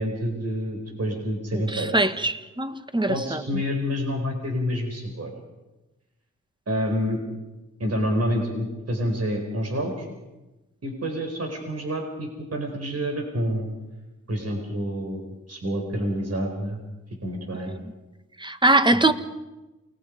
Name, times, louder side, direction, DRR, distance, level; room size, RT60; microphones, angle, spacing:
voice 1, 0.0-2.1 3.1-5.3 6.7-7.2 7.8-10.1 10.8-13.7 14.3-15.2 15.5-16.8 17.2-17.8 18.9-19.1, equal, 55° right, 4.7 m, -28 dB
voice 2, 1.5-3.4 18.4-19.1, right 2 dB, 15° right, 1.5 m, -22 dB
29.0 x 20.5 x 5.3 m
cardioid pair, 65°, 31 cm